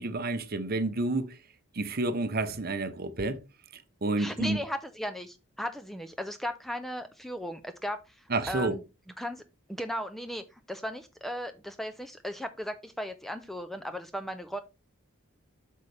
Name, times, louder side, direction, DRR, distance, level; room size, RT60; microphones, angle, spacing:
voice 1, 0.0-1.4 1.7-3.4 3.7-4.6 8.3-8.8, right 2 dB, 45° right, 0.8 m, -30 dB
voice 2, 4.2-8.8 9.2-9.4 9.7-14.6, equal, ahead, 0.5 m, -36 dB
8.2 x 5.5 x 3.4 m
head